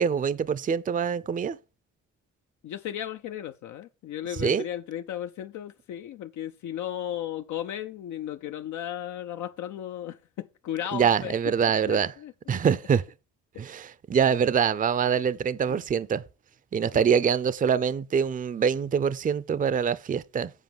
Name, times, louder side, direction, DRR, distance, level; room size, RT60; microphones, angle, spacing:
voice 1, 0.0-1.6 4.4-4.6 10.9-12.1 12.5-13.0 13.6-16.2 16.7-20.5, right 7 dB, 30° right, 0.5 m, -24 dB
voice 2, 2.6-11.3 11.9-12.6 15.7-15.8 16.9-17.1, left 11 dB, 75° left, 0.6 m, -35 dB
8.2 x 4.6 x 7.1 m
cardioid pair, 90°, 30 cm